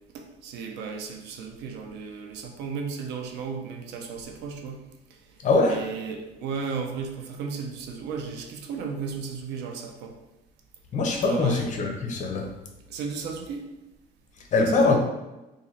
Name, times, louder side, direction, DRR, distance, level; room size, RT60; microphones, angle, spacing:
voice 1, 0.1-4.8 5.1-5.2 5.6-10.1 11.3-11.6 12.9-13.7 14.6-15.0, right 5 dB, 85° right, 2 dB, 0.6 m, -34 dB
voice 2, 5.4-5.8 10.9-12.5 14.5-15.0, left 3 dB, 45° left, 3 dB, 0.7 m, -22 dB
2.9 x 2.6 x 4.0 m, 1.0 s
cardioid pair, 110°, 17 cm